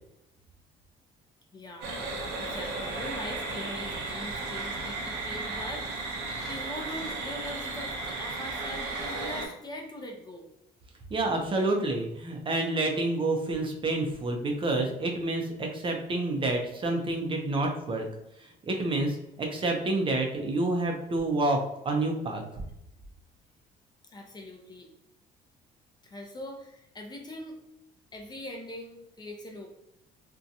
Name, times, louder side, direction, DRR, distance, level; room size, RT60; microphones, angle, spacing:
voice 1, 1.5-1.9 2.4-5.9 6.5-10.5 24.1-24.9 26.0-27.6 28.1-29.8, left 1 dB, 25° left, 2 dB, 0.5 m, -41 dB
sound 1, 1.8-9.5, right 3 dB, 90° right, 0.7 m, -34 dB
voice 2, 11.1-18.1 18.6-22.6, right 2 dB, 30° right, 2 dB, 0.5 m, -28 dB
2.6 x 2.2 x 2.6 m, 0.82 s
cardioid pair, 110°, 17 cm